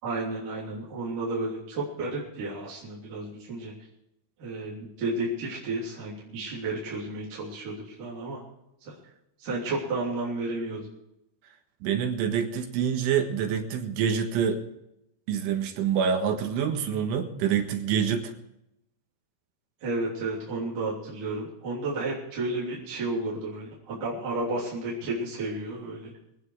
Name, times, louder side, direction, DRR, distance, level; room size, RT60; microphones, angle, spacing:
voice 1, 0.0-3.7 4.4-8.4 8.9-9.0 9.4-10.8 19.8-26.1, right 2 dB, 45° right, -6 dB, 4.4 m, -32 dB
voice 2, 11.8-14.6 15.3-18.3, right 7 dB, 80° right, 5 dB, 4.0 m, -26 dB
24.5 x 9.4 x 4.8 m, 0.83 s
omnidirectional pair, 5.5 m